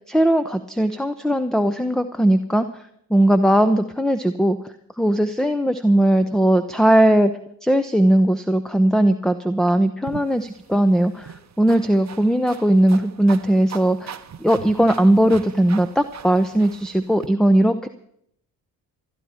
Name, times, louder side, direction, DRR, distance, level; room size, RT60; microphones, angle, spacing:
voice 1, 0.1-2.7 3.1-7.3 7.6-17.9, right 1 dB, ahead, 11 dB, 0.7 m, -19 dB
sound 1, 10.1-17.3, right 8 dB, 35° right, 0.9 m, -40 dB
28.5 x 10.0 x 4.4 m, 0.74 s
hypercardioid pair, 45°, 49 cm